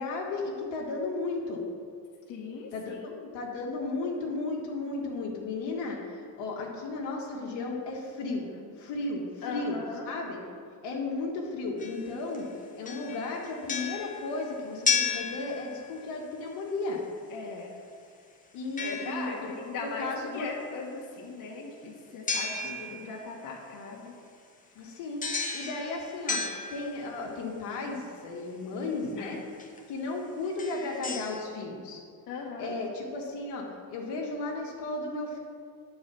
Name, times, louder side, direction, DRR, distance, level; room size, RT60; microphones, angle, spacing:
voice 1, 0.0-1.6 2.7-2.9 3.3-8.5 8.8-9.8 10.1-10.4 10.8-12.5 12.7-17.0 18.5-19.5 19.8-20.5 22.7-23.0 24.7-25.2 25.5-26.4 26.7-29.4 29.9-32.0 32.6-35.4, left 3 dB, 75° left, -2 dB, 1.7 m, -34 dB
voice 2, 2.3-3.3 8.5-8.7 9.4-10.1 17.3-17.8 18.8-24.1 29.2-29.4 32.3-32.7, left 4 dB, 50° left, -3 dB, 1.6 m, -39 dB
sound 1, 11.8-12.5 12.8-16.1 18.8-19.6 22.3-23.2 25.2-27.3 28.8-28.9 29.6-29.8 30.4-31.4, left 5 dB, 20° left, 0.9 m, -33 dB
9.0 x 4.8 x 6.9 m, 2.2 s
cardioid pair, 130°, 42 cm